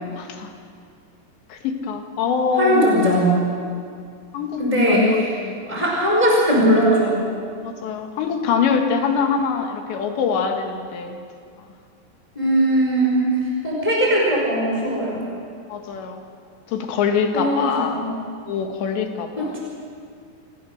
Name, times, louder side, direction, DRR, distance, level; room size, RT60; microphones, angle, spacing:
voice 1, 0.2-0.5 1.5-3.0 4.3-5.6 7.6-11.2 15.7-16.2 16.7-18.0 18.5-19.6, left 6 dB, 75° left, 4 dB, 3.9 m, -24 dB
voice 2, 2.6-3.4 4.6-5.4 5.7-7.2 12.3-13.3 13.6-15.2 17.3-18.1 19.4-19.6, right 1 dB, 10° left, -3 dB, 4.3 m, -19 dB
29.0 x 17.0 x 6.6 m, 2.3 s
omnidirectional pair, 5.2 m